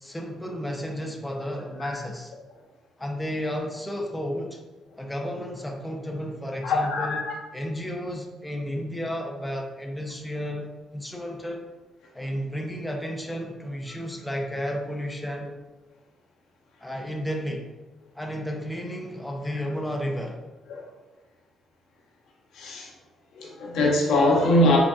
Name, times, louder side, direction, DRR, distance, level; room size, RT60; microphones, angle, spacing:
voice 1, 0.0-2.3 3.0-4.6 5.0-7.2 7.5-11.6 12.1-15.6 16.8-17.7 18.1-20.4, equal, 10° left, 1 dB, 0.6 m, -32 dB
voice 2, 6.6-7.3 20.7-20.8 22.5-22.9 23.4-24.8, left 1 dB, 80° left, -2 dB, 0.9 m, -22 dB
3.9 x 3.5 x 2.4 m, 1.2 s
cardioid pair, 90°, 0 cm